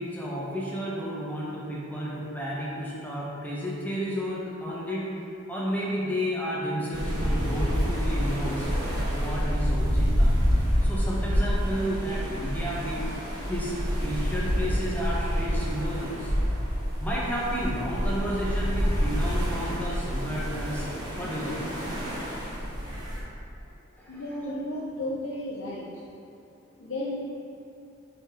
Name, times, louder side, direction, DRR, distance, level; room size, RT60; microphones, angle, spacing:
voice 1, 0.0-5.1 5.5-8.7 9.1-10.4 10.8-13.0 13.5-13.7 14.0-16.3 17.0-20.9 21.2-21.6 24.0-24.2, equal, 10° left, -6 dB, 0.9 m, -32 dB
sound 1, 6.9-23.2, equal, 20° right, 1.1 m, -27 dB
voice 2, 24.1-25.9 26.7-27.2, left 1 dB, 80° left, -6 dB, 0.7 m, -33 dB
5.1 x 5.1 x 3.8 m, 2.7 s
head